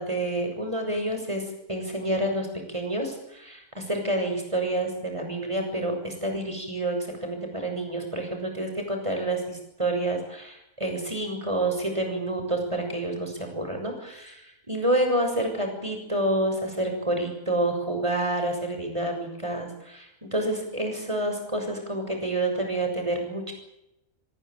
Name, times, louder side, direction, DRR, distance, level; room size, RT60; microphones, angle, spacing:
voice 1, 0.0-1.4 1.7-23.5, right 1 dB, 20° right, 3 dB, 7.0 m, -28 dB
25.0 x 17.0 x 9.3 m, 0.85 s
omnidirectional pair, 1.4 m